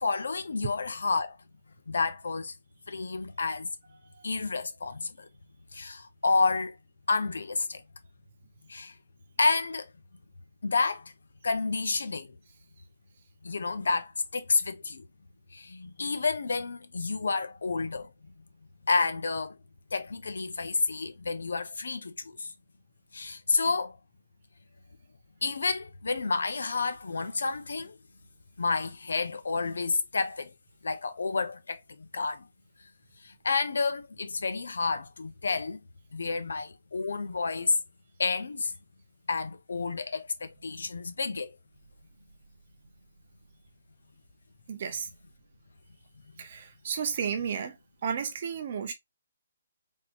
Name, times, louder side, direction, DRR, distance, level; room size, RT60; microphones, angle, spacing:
voice 1, 0.0-1.4 1.9-2.5 2.9-3.7 4.2-5.3 5.7-6.8 7.1-7.8 8.7-9.0 9.4-9.9 10.6-11.1 11.4-12.4 13.4-15.1 15.5-18.1 18.8-19.6 19.9-22.5 23.1-24.0 25.4-28.0 28.6-30.5 30.8-32.5 33.2-35.8 36.1-37.8 38.2-38.7 39.3-41.6 46.3-46.4, left 4 dB, 85° left, 0.8 m, -30 dB
voice 2, 44.7-45.1 46.4-47.8 48.0-48.9, right 7 dB, 30° right, 0.6 m, -32 dB
3.6 x 3.0 x 2.5 m
hypercardioid pair, 175°, 0 cm